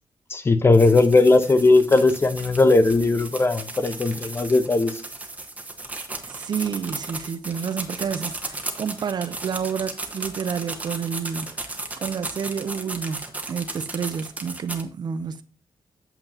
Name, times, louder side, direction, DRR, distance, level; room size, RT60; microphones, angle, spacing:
voice 1, 0.3-5.0, left 3 dB, 30° left, 0.9 m, -18 dB
sound 1, 0.7-14.8, right 2 dB, 15° right, 1.4 m, -35 dB
voice 2, 6.2-11.7 12.0-15.4, right 7 dB, 55° right, 0.7 m, -29 dB
8.8 x 6.9 x 2.8 m
cardioid pair, 110°, 9 cm